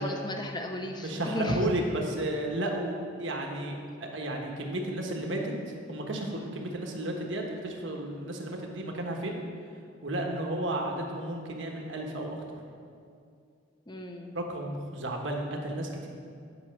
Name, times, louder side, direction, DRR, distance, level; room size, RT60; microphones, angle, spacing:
voice 1, 0.0-1.6 13.9-14.3, left 1 dB, 20° left, 4 dB, 0.8 m, -34 dB
voice 2, 1.0-5.5 5.9-9.4 10.0-12.6 14.3-16.1, right 1 dB, 70° right, 1 dB, 1.3 m, -33 dB
9.1 x 5.7 x 7.4 m, 2.4 s
head